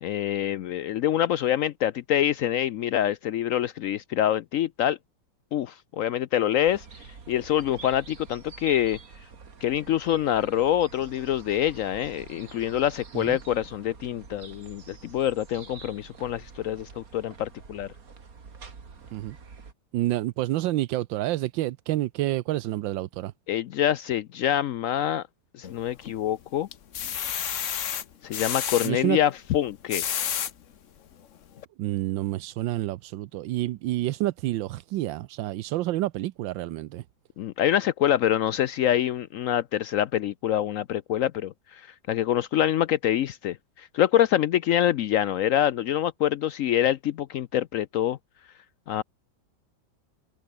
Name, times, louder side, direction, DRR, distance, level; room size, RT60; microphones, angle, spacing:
voice 1, 0.0-5.0 5.5-6.9 7.3-9.0 9.6-17.9 23.5-25.2 25.5-26.7 28.2-30.1 37.4-48.2 48.9-49.0, left 11 dB, 85° left, 0.7 m, -25 dB
sound 1, 6.7-19.7, right 5 dB, 50° right, 2.6 m, -47 dB
voice 2, 19.9-23.3 28.8-29.2 31.8-37.0, right 15 dB, 85° right, 1.4 m, -28 dB
sound 2, 25.6-26.2 26.7-28.9 29.7-30.5 31.1-31.2 31.6-31.7, left 9 dB, 50° left, 1.1 m, -30 dB
omnidirectional pair, 2.0 m